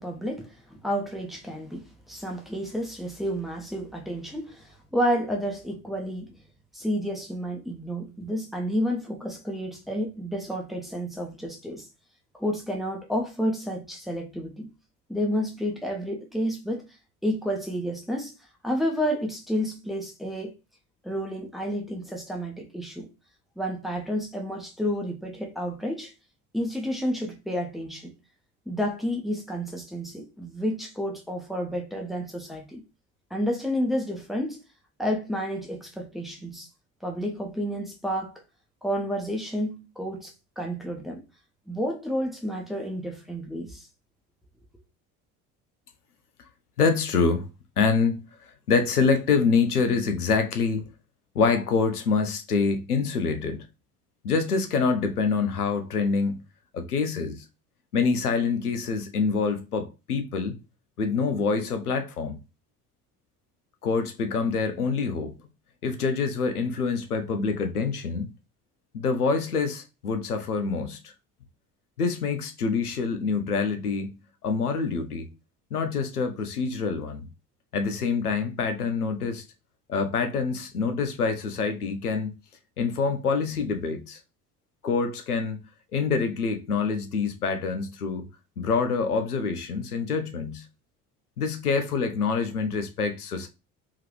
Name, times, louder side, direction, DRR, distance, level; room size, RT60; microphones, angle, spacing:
voice 1, 0.0-6.4 6.7-11.9 12.3-14.7 15.1-16.8 17.2-18.4 18.6-20.5 21.0-23.1 23.6-26.1 26.5-28.1 28.7-32.8 33.3-34.6 35.0-36.7 37.0-38.3 38.8-41.2 41.7-43.9, equal, ahead, 1.0 m, -30 dB
voice 2, 46.8-47.4 47.8-50.9 51.3-53.6 54.2-56.4 56.7-57.4 57.9-60.6 61.0-62.4 63.8-65.3 65.8-68.3 68.9-71.1 72.0-74.1 74.4-75.3 75.7-77.3 77.7-79.4 79.9-82.4 82.8-84.2 84.8-85.6 85.9-88.3 88.6-90.6 91.4-93.5, left 5 dB, 85° left, 0.6 m, -26 dB
3.7 x 2.9 x 3.1 m
figure-of-eight pair, 60°, 44 cm